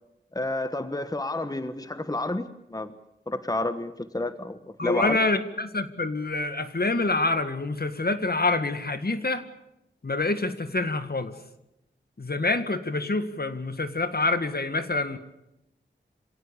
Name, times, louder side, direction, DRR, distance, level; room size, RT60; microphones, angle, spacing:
voice 1, 0.3-2.4 2.7-2.9 3.3-5.2, left 2 dB, 20° left, 11 dB, 1.3 m, -30 dB
voice 2, 4.8-9.4 10.0-11.3 12.2-15.2, left 2 dB, 55° left, 10 dB, 2.0 m, -26 dB
26.0 x 17.5 x 8.3 m, 0.85 s
wide cardioid pair, 50°, 19 cm